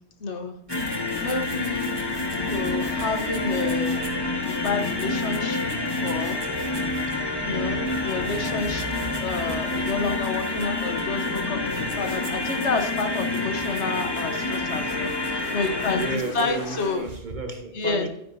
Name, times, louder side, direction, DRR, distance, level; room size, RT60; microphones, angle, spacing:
voice 1, 0.2-1.0 1.2-1.9 2.4-4.1 4.5-5.8 6.0-6.4 7.5-17.0 17.7-18.1, left 4 dB, 75° left, 1.4 m, -30 dB
sound 1, 0.7-16.2, left 2 dB, 20° left, 1.4 m, -28 dB
sound 2, 0.7-17.4, right 3 dB, 90° right, 2.0 m, -47 dB
Truck, 13.7-17.0, left 3 dB, 50° left, 1.4 m, -44 dB
voice 2, 15.9-18.1, right 2 dB, 45° right, 1.4 m, -33 dB
12.0 x 9.8 x 2.7 m
omnidirectional pair, 1.2 m